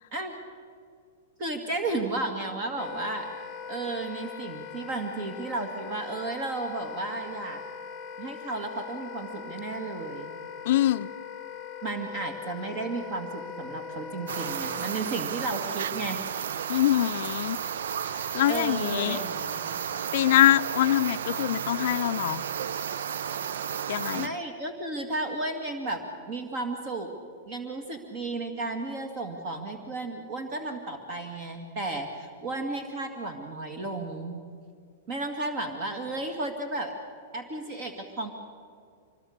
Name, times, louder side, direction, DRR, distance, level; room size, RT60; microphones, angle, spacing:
voice 1, 1.4-3.3 3.7-7.6 8.2-10.3 11.8-16.2 18.5-19.7 24.1-27.1 27.5-34.4 35.1-36.9 37.3-38.3, right 2 dB, 40° right, 2.2 m, -33 dB
Wind instrument woodwind instrument, 2.8-15.0, left 6 dB, 25° left, 0.8 m, -41 dB
voice 2, 10.7-11.1 16.7-17.6 18.3-19.2 20.1-22.4 23.9-24.3, left 13 dB, 60° left, 0.5 m, -24 dB
sound 1, 14.3-24.3, right 8 dB, 80° right, 0.6 m, -33 dB
25.0 x 21.0 x 6.7 m
hypercardioid pair, 150°, 0 cm